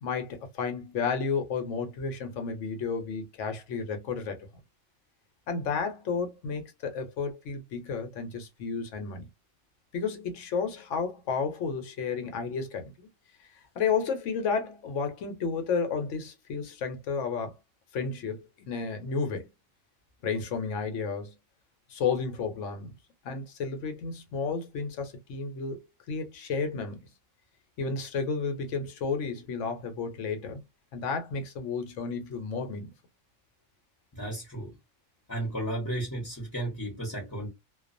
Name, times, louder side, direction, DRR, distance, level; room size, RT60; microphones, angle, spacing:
voice 1, 0.0-4.5 5.5-9.3 9.9-13.1 13.7-17.5 17.9-19.5 20.2-21.3 21.9-22.9 23.2-25.8 26.1-27.1 27.8-30.6 30.9-32.9, left 5 dB, 70° left, 1.0 m, -32 dB
voice 2, 34.1-34.7 35.3-37.5, right 1 dB, 15° left, 0.8 m, -33 dB
2.3 x 2.3 x 2.5 m
omnidirectional pair, 1.4 m